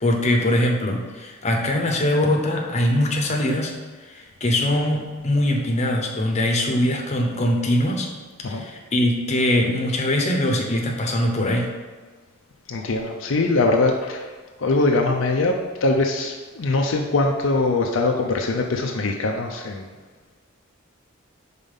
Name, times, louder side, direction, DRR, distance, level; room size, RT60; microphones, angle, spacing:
voice 1, 0.0-8.1 8.4-11.7, left 1 dB, 35° left, 1 dB, 0.9 m, -22 dB
voice 2, 12.7-14.3 14.6-19.9, left 2 dB, 65° left, 1 dB, 0.5 m, -22 dB
5.3 x 4.1 x 5.5 m, 1.4 s
head